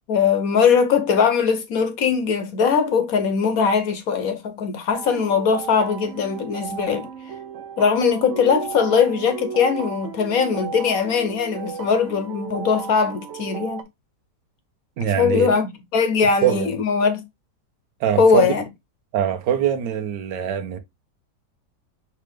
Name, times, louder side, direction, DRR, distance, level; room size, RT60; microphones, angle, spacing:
voice 1, 0.1-7.1 7.8-13.8 15.2-17.2 18.2-18.6, left 6 dB, 60° left, 1.1 m, -20 dB
sound 1, 4.9-13.8, right 7 dB, 65° right, 0.8 m, -35 dB
voice 2, 15.0-15.6 16.4-16.7 18.0-18.5 19.1-20.8, right 9 dB, 80° right, 1.4 m, -22 dB
4.8 x 3.3 x 3.3 m
omnidirectional pair, 1.8 m